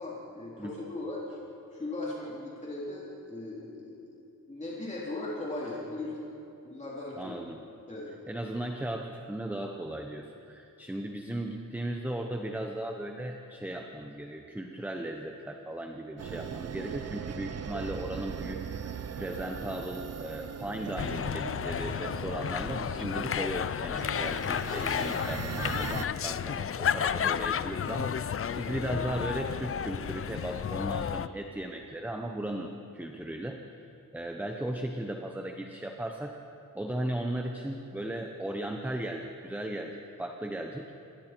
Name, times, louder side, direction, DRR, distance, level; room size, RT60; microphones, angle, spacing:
voice 1, 0.0-1.4 1.7-4.0 4.5-6.3 6.6-7.4 7.9-8.2, left 2 dB, 20° left, -7 dB, 3.5 m, -38 dB
voice 2, 7.2-7.6 8.3-28.2 28.6-33.9 34.1-36.4 36.7-40.9, right 1 dB, 5° right, 3 dB, 0.9 m, -36 dB
sound 1, 16.2-26.1, right 7 dB, 50° right, 0.7 m, -39 dB
sound 2, 21.0-31.3, left 8 dB, 40° left, 0.5 m, -32 dB
27.5 x 22.0 x 4.5 m, 2.8 s
wide cardioid pair, 160°, 33 cm